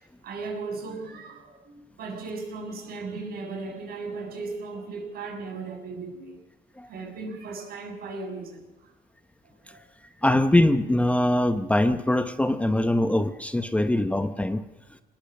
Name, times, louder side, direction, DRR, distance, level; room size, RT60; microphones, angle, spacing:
voice 1, 0.2-6.4 6.9-8.9 9.4-9.8 13.7-13.9, right 3 dB, 65° right, 3 dB, 7.1 m, -37 dB
voice 2, 10.2-14.6, left 1 dB, 10° left, 10 dB, 1.0 m, -22 dB
24.5 x 19.5 x 6.6 m, 1.1 s
cardioid pair, 110°, 17 cm